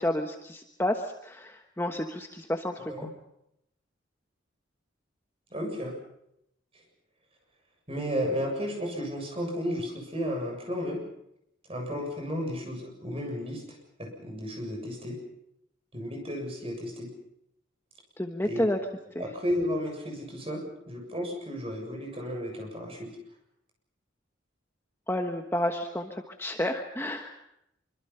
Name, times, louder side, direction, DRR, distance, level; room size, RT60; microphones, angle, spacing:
voice 1, 0.0-3.1 18.2-18.8 19.1-19.2 25.1-27.3, left 1 dB, 10° left, 4 dB, 1.2 m, -30 dB
voice 2, 5.5-6.0 7.9-11.0 11.7-13.6 14.0-15.2 15.9-17.1 18.4-18.6 19.2-23.1, equal, 30° right, 1 dB, 7.4 m, -33 dB
25.5 x 24.5 x 5.7 m, 0.78 s
head